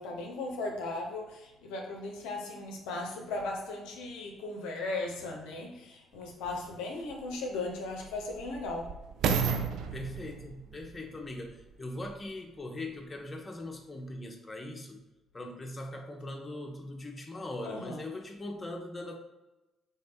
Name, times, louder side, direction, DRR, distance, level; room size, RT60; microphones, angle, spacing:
voice 1, 0.0-8.9 17.6-18.0, left 2 dB, 70° left, 0 dB, 0.6 m, -37 dB
sound 1, 6.2-6.3 7.0-12.3 13.0-13.1, right 6 dB, 60° right, 0.5 m, -34 dB
voice 2, 9.9-15.0 15.3-19.2, left 1 dB, 25° left, 2 dB, 0.8 m, -40 dB
3.5 x 3.2 x 4.2 m, 1.0 s
figure-of-eight pair, 45°, 0 cm